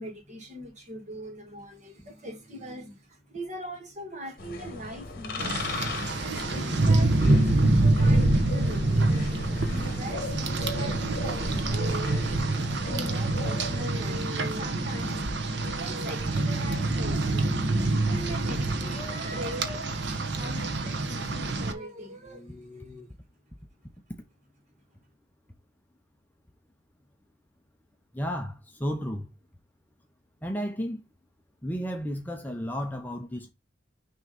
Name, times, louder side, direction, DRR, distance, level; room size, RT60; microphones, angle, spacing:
voice 1, 0.0-9.2 9.7-12.3 12.8-15.2 15.6-17.5 17.9-19.9 20.3-23.1, equal, 35° right, 1.9 m, -40 dB
sound 1, 4.4-13.9, left 2 dB, 45° left, 1.2 m, -35 dB
Rain, 5.4-21.7, right 2 dB, 55° right, 1.0 m, -26 dB
voice 2, 28.1-29.3 30.4-31.0 31.6-33.5, equal, 10° left, 0.6 m, -32 dB
6.3 x 3.0 x 5.1 m
head